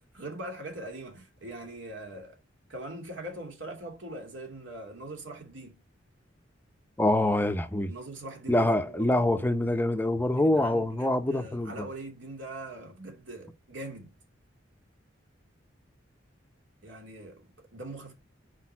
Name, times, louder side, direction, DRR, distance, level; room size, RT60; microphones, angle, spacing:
voice 1, 0.0-2.4 2.7-5.8 7.9-9.5 10.4-14.2 16.8-18.1, right 1 dB, 70° right, 2.5 m, -42 dB
voice 2, 7.0-7.9 8.5-11.9, left 1 dB, 10° left, 0.7 m, -25 dB
6.3 x 5.1 x 5.7 m
head